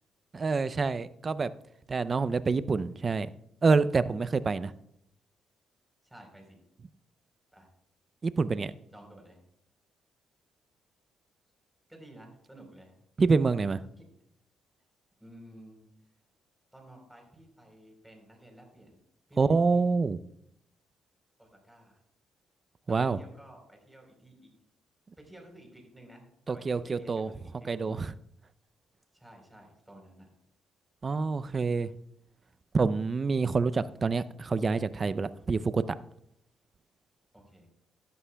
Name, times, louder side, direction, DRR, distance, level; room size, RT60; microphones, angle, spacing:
voice 1, 0.3-1.5 1.9-3.3 3.6-4.7 8.2-8.7 13.2-13.8 19.4-20.2 22.9-23.2 26.5-27.3 27.7-28.1 31.0-31.9 32.7-36.0, right 4 dB, 35° right, 15 dB, 0.5 m, -27 dB
voice 2, 6.0-6.6 7.5-7.7 8.9-9.4 11.9-13.0 14.0-14.1 15.2-15.9 16.7-19.0 19.3-20.0 21.4-22.0 22.9-24.5 25.2-28.0 29.1-30.3 37.3-37.7, right 1 dB, 5° right, 2 dB, 3.9 m, -53 dB
16.0 x 11.0 x 2.3 m, 0.74 s
cardioid pair, 90°, 0 cm